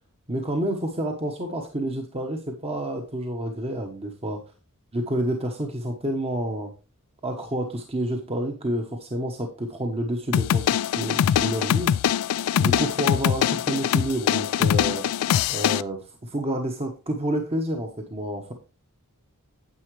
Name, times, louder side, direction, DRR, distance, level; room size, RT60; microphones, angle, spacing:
voice 1, 0.3-4.4 4.9-6.7 7.2-11.9 12.6-15.1 15.5-18.5, right 1 dB, 25° right, 3 dB, 1.1 m, -29 dB
sound 1, 10.3-15.8, left 9 dB, 85° left, 0.3 m, -23 dB
9.6 x 7.7 x 3.2 m, 0.31 s
head